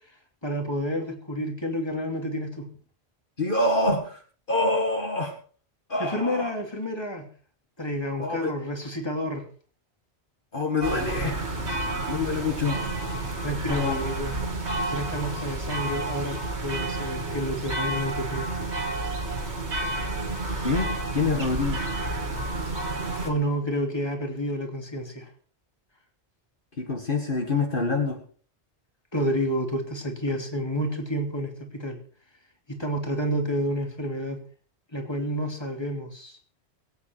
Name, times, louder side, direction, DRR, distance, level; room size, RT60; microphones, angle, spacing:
voice 1, 0.4-2.7 6.0-7.3 7.8-9.4 13.4-14.4 14.9-16.4 16.6-18.7 23.2-25.3 29.1-32.0 32.7-34.4 34.9-36.4, equal, 25° left, 3 dB, 2.8 m, -29 dB
voice 2, 3.4-4.2 4.5-5.4 5.9-6.5 8.2-8.5 10.5-11.7 12.1-12.9 13.7-14.0 20.6-21.8 26.8-28.2, left 3 dB, 50° left, 2 dB, 2.0 m, -26 dB
sound 1, 10.8-23.3, right 2 dB, 75° right, 2.5 m, -30 dB
22.5 x 8.9 x 4.5 m, 0.43 s
omnidirectional pair, 1.1 m